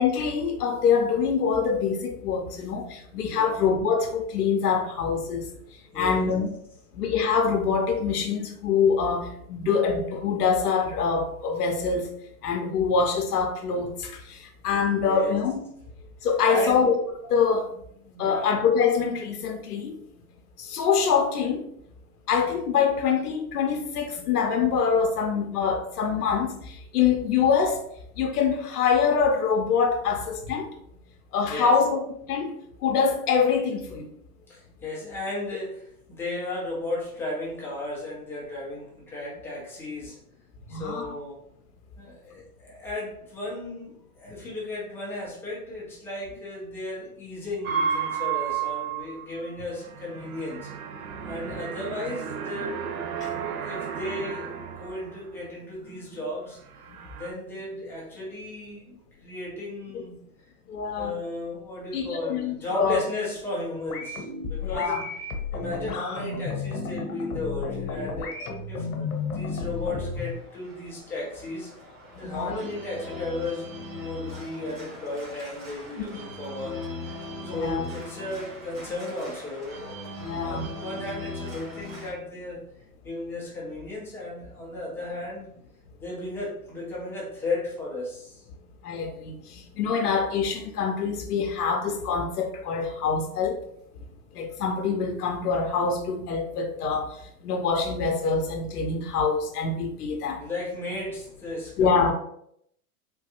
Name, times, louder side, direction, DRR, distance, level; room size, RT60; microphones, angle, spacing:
voice 1, 0.0-5.5 5.9-6.5 6.9-12.1 12.4-15.6 16.2-17.0 17.2-17.7 18.2-20.0 20.6-21.7 22.3-27.8 28.2-30.7 31.3-32.0 32.3-34.1 40.7-41.1 53.2-53.3 56.9-57.0 60.7-61.1 61.9-63.0 64.6-65.0 72.2-72.6 77.4-77.9 80.2-80.6 88.8-93.6 94.3-100.4 101.8-102.1, left 6 dB, 90° left, 4 dB, 0.6 m, -25 dB
voice 2, 5.9-6.3 15.0-15.4 16.5-16.8 18.0-18.5 31.5-31.7 34.5-40.2 40.7-41.4 42.0-50.7 51.2-52.9 53.2-56.6 57.1-60.2 61.0-65.0 65.5-68.3 68.7-71.7 72.2-76.9 77.4-82.6 83.0-85.5 86.0-88.4 100.4-102.0, left 2 dB, 5° left, -6 dB, 0.3 m, -35 dB
sound 1, 47.6-55.5 55.8-56.3 56.6-57.3, right 7 dB, 65° right, 0.7 m, -33 dB
sound 2, 63.9-70.3, left 4 dB, 75° left, 0.9 m, -33 dB
Organ, 69.0-82.1, left 2 dB, 35° right, 1.5 m, -40 dB
3.3 x 2.3 x 2.8 m, 0.71 s
hypercardioid pair, 120°, 45 cm